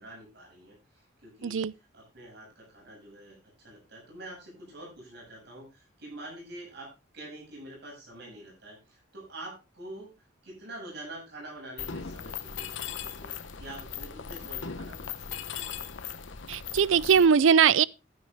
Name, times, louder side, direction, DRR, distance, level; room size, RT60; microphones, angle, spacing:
voice 1, 0.0-1.7 1.9-15.6, right 1 dB, 60° right, 7.3 m, -46 dB
voice 2, 1.4-1.7 16.5-17.8, right 7 dB, 80° right, 0.5 m, -21 dB
Mechanisms, 11.8-17.2, left 7 dB, 75° left, 0.9 m, -38 dB
12.5 x 9.8 x 3.5 m
head